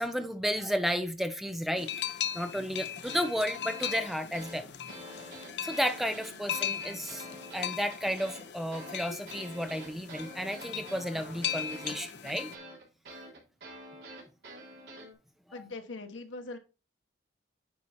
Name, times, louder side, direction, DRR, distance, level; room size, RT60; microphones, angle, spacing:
voice 1, 0.0-1.9 2.3-4.7 5.6-7.3 7.5-12.5, equal, ahead, 0.6 m, -32 dB
sound 1, 1.8-12.6, left 9 dB, 60° left, 0.6 m, -38 dB
sound 2, 3.0-15.1, right 1 dB, 60° right, 3.5 m, -47 dB
voice 2, 15.5-16.6, left 3 dB, 85° left, 1.2 m, -41 dB
9.5 x 4.4 x 4.2 m
head